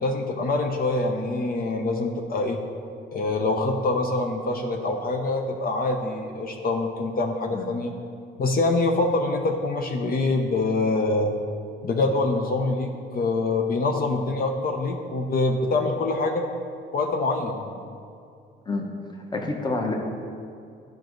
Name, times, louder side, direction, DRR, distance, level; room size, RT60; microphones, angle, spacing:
voice 1, 0.0-2.6 3.1-7.9 8.4-11.3 11.8-16.4 16.9-17.7, left 2 dB, 50° left, 2 dB, 0.7 m, -25 dB
voice 2, 19.3-20.0, left 3 dB, 20° left, 1 dB, 1.0 m, -27 dB
11.0 x 5.2 x 3.1 m, 2.4 s
cardioid pair, 90°, 20 cm